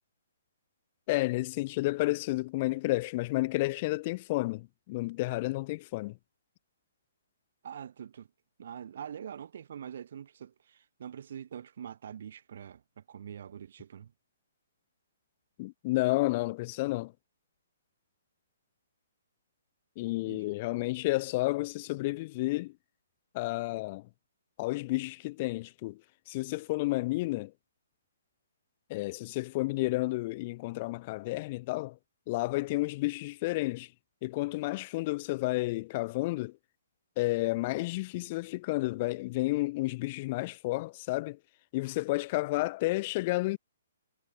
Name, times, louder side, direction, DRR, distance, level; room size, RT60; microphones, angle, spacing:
voice 1, 1.1-6.2 15.6-17.1 20.0-22.7 23.3-24.1 24.6-26.0 26.3-27.5 28.9-32.0 32.3-33.9 34.2-36.5 37.2-41.4 41.7-43.6, left 21 dB, 35° left, 0.4 m, -31 dB
voice 2, 7.6-8.3 8.6-14.1 20.3-20.6, right 8 dB, 60° right, 1.8 m, -44 dB
hypercardioid pair, 155°, 0 cm